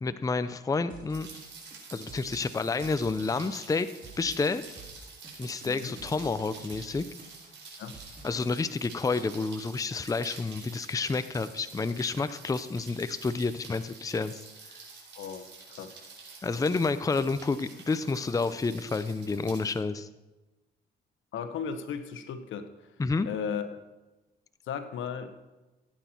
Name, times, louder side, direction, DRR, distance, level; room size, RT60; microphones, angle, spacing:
voice 1, 0.0-1.3 1.9-3.9 4.2-4.6 5.4-7.0 8.2-14.4 16.4-20.1 23.0-23.3, left 4 dB, 15° left, 12 dB, 0.5 m, -29 dB
sound 1, 0.9-8.5, right 3 dB, 45° right, 3.1 m, -50 dB
Rain, 1.1-19.7, right 4 dB, 65° right, 4.7 m, -48 dB
voice 2, 5.6-5.9 7.8-7.9 15.1-15.4 15.8-16.0 21.3-22.7 23.2-23.7 24.7-25.3, left 7 dB, 80° left, 9 dB, 1.2 m, -35 dB
16.0 x 9.2 x 4.5 m, 1.1 s
cardioid pair, 90°, 20 cm